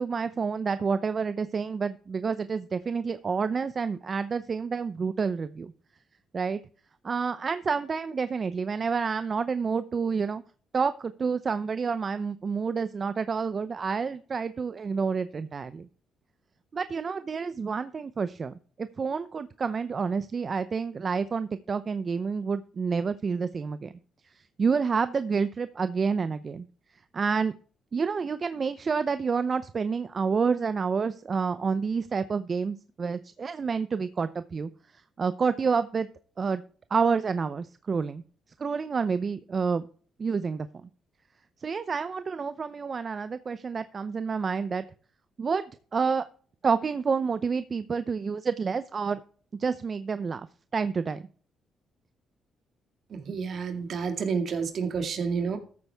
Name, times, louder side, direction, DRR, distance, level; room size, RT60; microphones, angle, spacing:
voice 1, 0.0-5.7 6.3-6.6 7.0-10.4 10.7-15.9 16.7-23.9 24.6-26.7 27.1-27.5 27.9-34.7 35.2-36.1 36.4-36.6 36.9-38.2 38.6-39.8 40.2-40.7 41.6-44.9 45.4-45.6 45.9-46.3 46.6-49.2 49.6-50.5 50.7-51.2, right 5 dB, 40° right, 13 dB, 0.6 m, -28 dB
voice 2, 53.1-55.6, right 5 dB, 60° right, 7 dB, 2.2 m, -30 dB
14.0 x 8.1 x 3.5 m, 0.42 s
cardioid pair, 90°, 0 cm